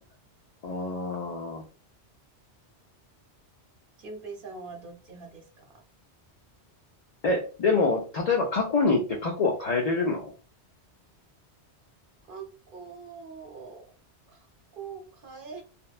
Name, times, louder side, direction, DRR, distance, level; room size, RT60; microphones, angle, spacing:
voice 1, 0.6-1.6 7.2-10.3, left 3 dB, 60° left, 0 dB, 0.4 m, -26 dB
voice 2, 4.0-5.8 12.2-13.9 14.3-14.5 14.7-15.6, right 5 dB, 55° right, 2 dB, 0.9 m, -43 dB
2.9 x 2.1 x 2.3 m, 0.36 s
omnidirectional pair, 1.2 m